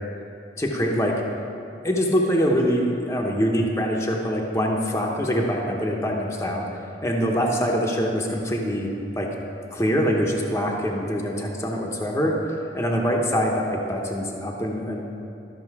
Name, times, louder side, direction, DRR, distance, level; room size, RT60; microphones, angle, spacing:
voice 1, 0.6-1.1 1.8-6.6 7.0-8.9 9.2-9.3 9.7-12.3 12.7-15.0, equal, 15° left, -1 dB, 0.9 m, -24 dB
13.0 x 6.3 x 4.7 m, 2.6 s
head